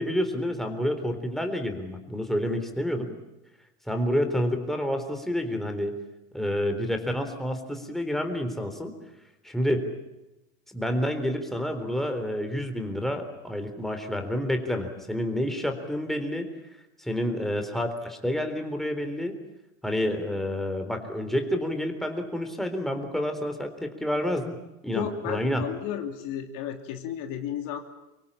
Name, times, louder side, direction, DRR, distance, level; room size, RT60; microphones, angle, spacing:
voice 1, 0.0-3.1 3.9-6.0 6.3-8.9 9.4-9.9 10.7-16.5 17.0-19.4 19.8-24.6 24.8-25.7, equal, ahead, 5 dB, 3.8 m, -29 dB
voice 2, 24.9-27.8, left 9 dB, 55° left, 5 dB, 2.9 m, -33 dB
24.0 x 24.0 x 8.7 m, 0.96 s
hypercardioid pair, 105°, 39 cm